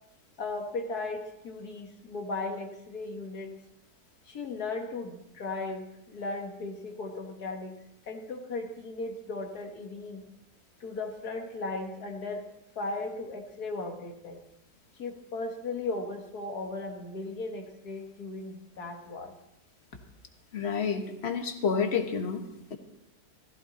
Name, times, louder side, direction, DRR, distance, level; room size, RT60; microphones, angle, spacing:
voice 1, 0.4-3.5 4.3-7.8 8.1-10.2 10.8-12.5 12.8-14.4 15.0-19.3, left 3 dB, 70° left, 3 dB, 2.1 m, -36 dB
voice 2, 20.5-22.4 22.7-22.8, left 6 dB, 45° left, 6 dB, 1.4 m, -29 dB
14.5 x 14.5 x 4.2 m, 0.84 s
omnidirectional pair, 1.7 m